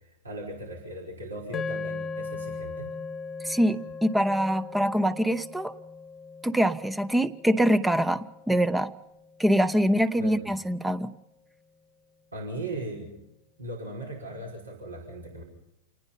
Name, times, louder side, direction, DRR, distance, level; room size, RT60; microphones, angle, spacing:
voice 1, 0.0-2.9 10.2-10.4 12.3-13.1 13.6-15.4, right 1 dB, 80° right, -1 dB, 5.1 m, -38 dB
sound 1, 1.5-9.9, left 4 dB, 20° left, 1.1 m, -39 dB
voice 2, 3.4-5.7 6.4-8.9 9.4-11.1, equal, 5° right, 14 dB, 0.8 m, -24 dB
27.5 x 19.5 x 5.7 m, 0.85 s
figure-of-eight pair, 90°, 0 cm